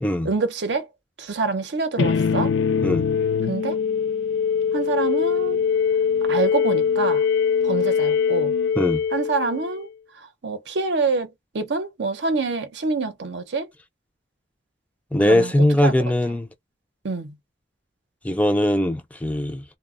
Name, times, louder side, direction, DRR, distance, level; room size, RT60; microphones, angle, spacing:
voice 1, 0.2-0.9 1.2-2.5 3.4-3.8 4.7-5.6 6.3-7.3 7.6-8.5 9.1-9.9 10.2-11.3 11.5-13.7 15.2-15.5 15.8-15.9 17.0-17.3, right 4 dB, 80° right, 0.6 m, -26 dB
sound 1, 2.0-9.9, left 6 dB, 85° left, 0.4 m, -22 dB
voice 2, 15.1-16.5 18.2-19.6, left 1 dB, 10° left, 0.3 m, -20 dB
2.1 x 2.0 x 3.5 m
head